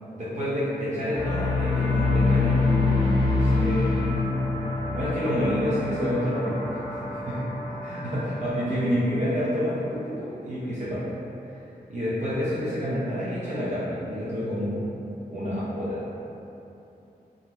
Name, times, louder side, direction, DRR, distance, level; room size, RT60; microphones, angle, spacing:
voice 1, 0.1-4.1 4.9-7.4 7.7-11.0 11.9-15.0 15.3-16.0, equal, 45° right, -11 dB, 0.5 m, -28 dB
sound 1, 1.1-9.4, left 3 dB, 25° left, 0.5 m, -26 dB
2.4 x 2.0 x 2.9 m, 2.9 s
wide cardioid pair, 155°, 17 cm